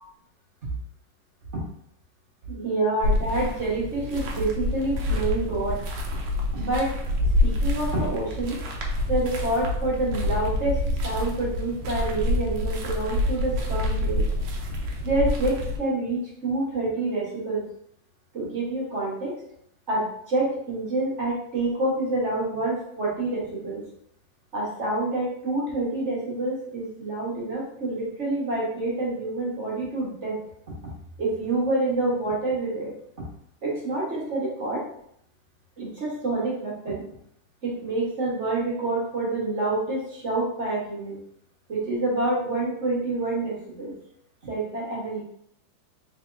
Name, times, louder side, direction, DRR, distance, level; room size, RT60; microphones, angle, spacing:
voice 1, 2.5-5.8 6.5-6.9 7.4-8.6 9.1-10.8 11.0-14.2 15.0-17.6 18.3-19.3 19.9-23.8 24.5-30.4 30.8-30.9 31.2-32.9 33.2-33.3 33.6-34.8 35.8-37.0 37.6-41.2 41.7-43.9 44.4-45.2, right 2 dB, 45° right, -6 dB, 1.2 m, -27 dB
sound 1, 3.0-15.8, left 1 dB, 75° right, 1.2 m, -27 dB
3.7 x 3.3 x 2.5 m, 0.70 s
omnidirectional pair, 2.1 m